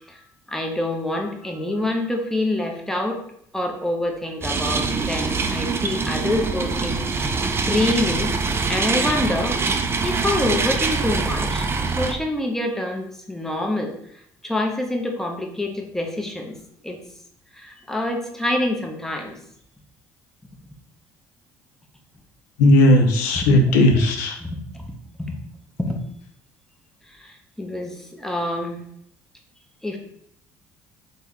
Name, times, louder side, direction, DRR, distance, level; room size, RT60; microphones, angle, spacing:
voice 1, 0.1-3.2 3.5-8.3 8.7-9.7 10.0-13.9 14.4-16.6 16.8-17.0 17.5-19.4 23.3-23.5 24.4-25.3 25.8-26.0 27.1-28.8 29.8-30.0, left 1 dB, 5° left, 2 dB, 0.7 m, -26 dB
sound 1, 4.4-12.1, right 4 dB, 30° right, 0.4 m, -24 dB
voice 2, 22.6-24.4, left 1 dB, 85° left, 4 dB, 0.4 m, -16 dB
3.4 x 2.2 x 3.1 m, 0.69 s
hypercardioid pair, 65°, 9 cm